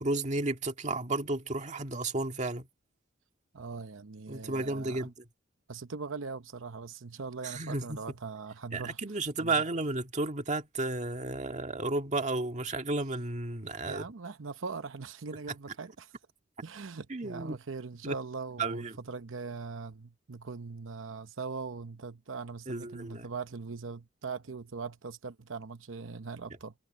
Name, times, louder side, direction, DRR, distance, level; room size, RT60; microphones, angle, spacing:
voice 1, 0.0-2.7 4.3-5.1 7.4-8.0 8.7-14.1 17.1-17.6 18.0-18.2 18.6-19.0 22.7-23.3, right 2 dB, 40° right, 1.8 m, -33 dB
voice 2, 3.5-5.1 5.7-9.0 9.4-9.5 13.6-16.1 16.6-26.7, right 4 dB, 90° right, 0.8 m, -41 dB
head